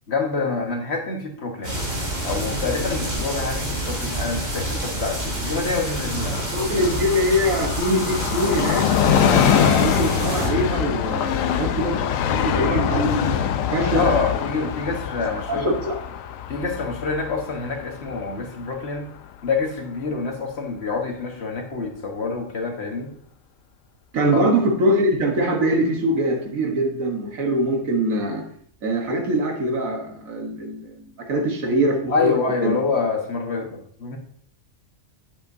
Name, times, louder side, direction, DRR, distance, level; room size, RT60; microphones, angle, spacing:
voice 1, 0.1-1.8 2.2-6.9 13.8-15.7 16.5-19.1 19.4-23.1 24.3-24.5 31.4-31.5 32.1-34.2, left 4 dB, 55° left, 2 dB, 1.5 m, -27 dB
sound 1, 1.6-10.5, right 1 dB, 50° right, 3.9 m, -28 dB
Train, 6.0-19.3 19.6-19.7, left 9 dB, 80° left, 1.0 m, -24 dB
voice 2, 6.5-12.0 12.3-14.4 15.5-15.9 24.1-28.4 28.8-32.8, right 1 dB, 85° right, 2 dB, 1.7 m, -23 dB
9.5 x 8.1 x 2.7 m, 0.62 s
omnidirectional pair, 1.4 m